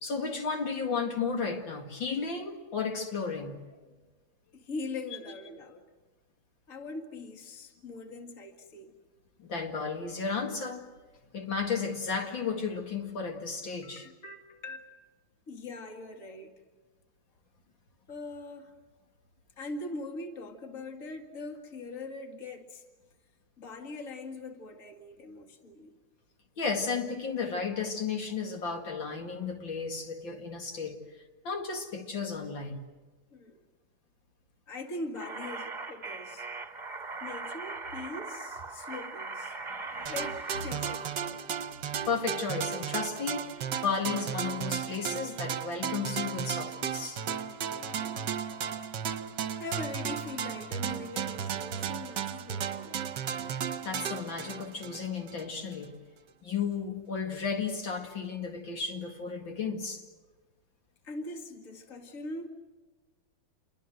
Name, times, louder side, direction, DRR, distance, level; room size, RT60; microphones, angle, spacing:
voice 1, 0.0-3.6 9.4-10.9 11.3-14.1 26.6-31.0 31.4-32.8 39.6-40.1 40.7-40.8 42.1-47.2 53.8-55.9 56.4-60.0, left 5 dB, 65° left, 2.9 m, -33 dB
voice 2, 4.5-5.9 6.7-8.9 13.8-14.9 15.5-16.5 18.1-18.8 19.6-22.8 23.6-25.9 33.3-33.6 34.7-36.5 37.2-39.6 40.1-41.4 47.8-48.5 48.9-49.0 49.6-53.1 61.0-62.5, left 2 dB, 40° left, 2.4 m, -42 dB
sound 1, 35.1-41.1, right 3 dB, 25° right, 1.5 m, -40 dB
sound 2, 40.1-55.5, right 8 dB, 60° right, 1.5 m, -35 dB
28.5 x 23.5 x 7.8 m
omnidirectional pair, 2.3 m